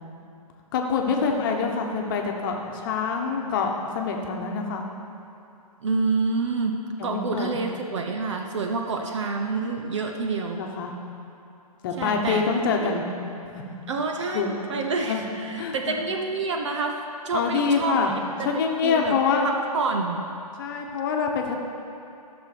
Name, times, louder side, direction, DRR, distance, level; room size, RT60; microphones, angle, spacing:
voice 1, 0.7-4.8 7.0-7.6 10.6-10.9 11.8-13.0 13.5-13.6 14.3-14.5 15.1-15.2 15.6-15.9 17.3-18.1 18.4-19.5 20.6-21.5, left 5 dB, 35° left, 2 dB, 1.2 m, -25 dB
voice 2, 5.8-10.6 12.0-12.5 12.8-13.0 13.9-18.1 18.4-19.2 19.4-20.3, right 4 dB, 50° right, 3 dB, 0.8 m, -28 dB
13.5 x 6.1 x 6.0 m, 2.7 s
hypercardioid pair, 155°, 20 cm